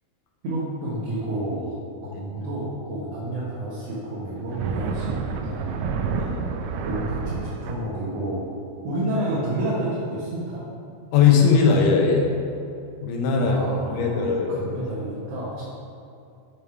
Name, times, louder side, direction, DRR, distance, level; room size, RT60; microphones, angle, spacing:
voice 1, 0.4-1.8 2.0-5.8 6.8-8.4 8.8-10.6 13.4-15.6, right 1 dB, 60° right, -8 dB, 2.0 m, -30 dB
sound 1, 4.4-7.7, right 5 dB, 80° right, 1.6 m, -29 dB
voice 2, 6.1-6.5 11.1-12.3 13.0-13.6 13.9-14.7, left 5 dB, 90° left, 0 dB, 2.4 m, -20 dB
8.6 x 3.6 x 4.5 m, 2.5 s
omnidirectional pair, 3.6 m